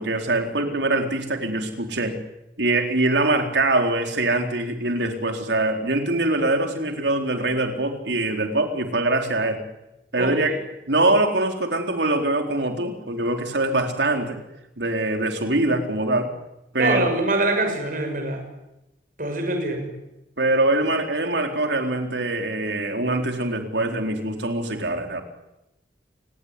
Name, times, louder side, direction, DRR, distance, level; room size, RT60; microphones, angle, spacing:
voice 1, 0.0-2.2 2.6-9.6 10.1-10.6 10.9-14.4 14.8-16.3 16.7-17.1 20.4-25.2, right 2 dB, 85° right, 5 dB, 4.0 m, -23 dB
voice 2, 10.2-10.6 16.8-18.4 19.2-19.9, right 2 dB, 50° right, 6 dB, 6.5 m, -24 dB
29.0 x 20.0 x 9.9 m, 0.94 s
head